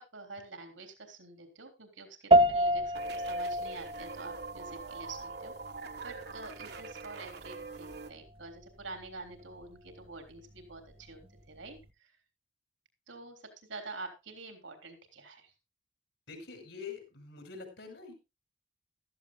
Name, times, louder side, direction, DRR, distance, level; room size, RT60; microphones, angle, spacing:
voice 1, 0.0-5.5 6.0-11.2 11.5-12.2 13.1-13.4 13.7-15.5, right 3 dB, 85° right, 5 dB, 3.6 m, -47 dB
sound 1, 2.3-11.9, right 1 dB, 30° right, 0.9 m, -31 dB
sound 2, 2.9-8.1, right 4 dB, 60° right, 1.5 m, -44 dB
voice 2, 16.3-18.1, left 5 dB, 70° left, 5 dB, 5.8 m, -45 dB
15.5 x 13.5 x 2.3 m, 0.27 s
head